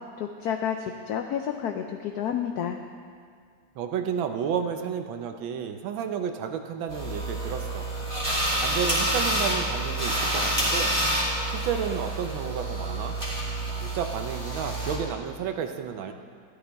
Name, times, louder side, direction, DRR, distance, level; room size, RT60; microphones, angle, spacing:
voice 1, 0.2-2.8, left 8 dB, 80° left, 5 dB, 0.8 m, -30 dB
voice 2, 3.7-7.9 8.6-11.0 11.5-13.2 13.8-16.1, right 7 dB, 80° right, 7 dB, 1.5 m, -31 dB
sound 1, 6.9-15.0, right 1 dB, 15° right, 2.5 m, -28 dB
13.0 x 11.5 x 3.4 m, 2.1 s
omnidirectional pair, 2.2 m